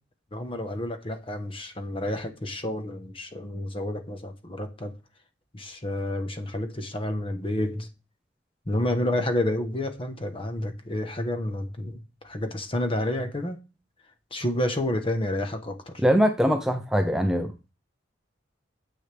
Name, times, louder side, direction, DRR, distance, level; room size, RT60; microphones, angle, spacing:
voice 1, 0.3-4.9 5.5-7.9 8.7-13.6 14.3-16.0, left 1 dB, 30° left, 1.1 m, -30 dB
voice 2, 16.0-17.7, equal, 5° right, 0.6 m, -22 dB
9.6 x 7.8 x 3.4 m
head